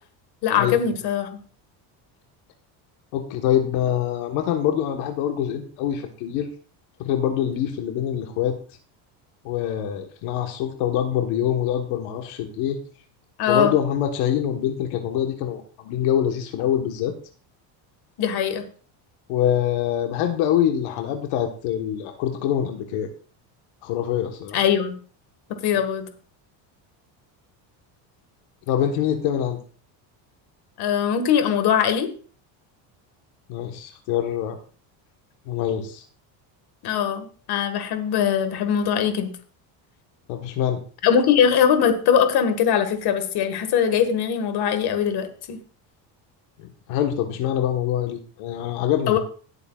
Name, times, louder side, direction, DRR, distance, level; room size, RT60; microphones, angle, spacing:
voice 1, 0.4-1.3 13.4-13.7 18.2-18.6 24.5-24.9 25.6-26.1 30.8-32.1 36.8-39.3 41.0-45.6 49.1-49.2, left 8 dB, 55° left, 8 dB, 1.7 m, -21 dB
voice 2, 3.1-6.5 7.0-8.5 9.4-12.8 13.5-17.1 19.3-23.1 23.8-24.6 28.7-29.6 33.5-34.6 35.5-36.0 40.3-40.8 46.6-49.2, left 10 dB, 80° left, 4 dB, 1.4 m, -24 dB
18.0 x 8.3 x 2.4 m, 0.41 s
cardioid pair, 140°, 47 cm